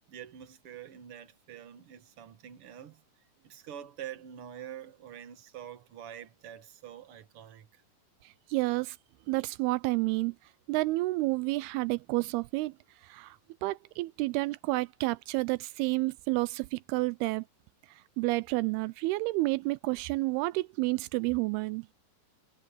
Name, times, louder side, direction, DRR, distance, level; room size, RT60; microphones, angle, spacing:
voice 1, 0.1-3.0 3.4-7.8, right 10 dB, 65° right, 1.4 m, -46 dB
voice 2, 8.5-9.0 9.3-10.3 10.7-12.7 13.1-13.4 13.6-17.4 18.2-21.9, right 22 dB, 85° right, 2.5 m, -30 dB
omnidirectional pair, 4.5 m